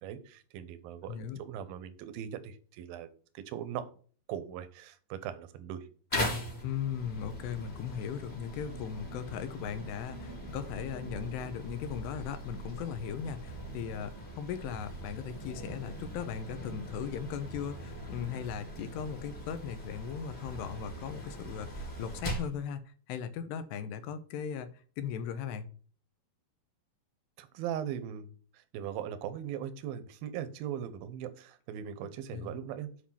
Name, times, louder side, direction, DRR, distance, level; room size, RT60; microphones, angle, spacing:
voice 1, 0.0-3.1 3.3-3.9 4.3-5.8 27.4-28.3 28.7-32.9, right 9 dB, 70° right, 11 dB, 2.4 m, -39 dB
voice 2, 1.1-1.4 6.6-22.8 23.1-24.7 25.0-25.7 32.3-32.6, left 8 dB, 80° left, 11 dB, 2.9 m, -38 dB
sound 1, 6.1-22.6, equal, 15° left, 2.2 m, -41 dB
sound 2, 10.5-10.9 11.7-12.7 13.0-13.9 14.7-16.9 17.5-18.5 19.0-19.9 20.5-22.5, left 1 dB, 65° left, 2.0 m, -50 dB
8.7 x 5.2 x 5.7 m, 0.42 s
omnidirectional pair, 5.0 m